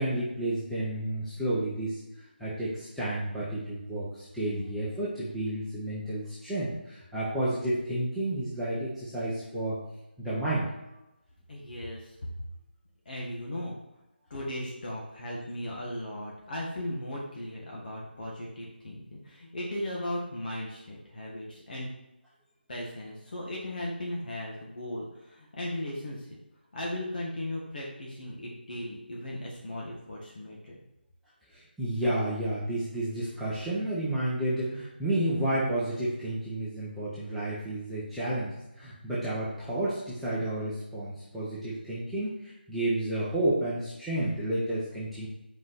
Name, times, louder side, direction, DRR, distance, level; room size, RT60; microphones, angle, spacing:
voice 1, 0.0-9.8 10.2-10.7 31.5-45.3, right 1 dB, ahead, -12 dB, 0.9 m, -31 dB
voice 2, 11.5-12.2 13.0-13.8 14.3-21.9 22.7-26.3 26.7-30.8, left 1 dB, 50° left, -3 dB, 1.7 m, -37 dB
5.4 x 4.9 x 6.2 m, 0.93 s
figure-of-eight pair, 160°, 6 cm